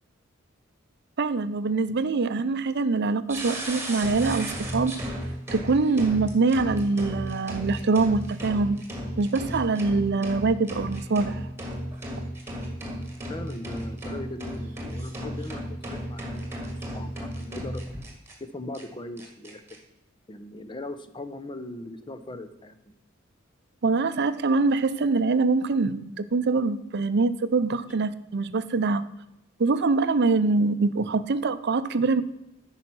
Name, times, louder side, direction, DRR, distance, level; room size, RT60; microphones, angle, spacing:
voice 1, 1.2-4.9 5.5-8.8 9.2-11.4 23.8-29.0 29.6-32.2, right 3 dB, 55° right, 13 dB, 0.6 m, -24 dB
sound 1, 3.3-18.3 18.7-18.8 19.2-19.8, equal, 10° right, 1.9 m, -34 dB
voice 2, 13.3-17.8 18.4-19.8 20.3-22.8, left 2 dB, 25° left, 10 dB, 0.7 m, -39 dB
9.4 x 5.7 x 6.0 m, 0.91 s
head